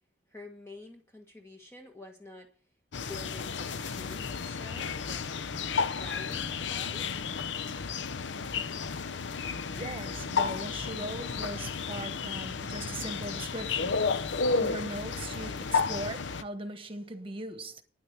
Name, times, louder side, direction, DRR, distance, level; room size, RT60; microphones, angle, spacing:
voice 1, 0.3-2.5 3.0-5.3 5.9-7.2, left 2 dB, 15° left, 1.5 m, -47 dB
sound 1, 2.9-16.4, left 5 dB, 90° left, 0.7 m, -32 dB
voice 2, 9.3-17.8, right 1 dB, 30° right, 1.4 m, -40 dB
10.0 x 8.7 x 8.5 m
head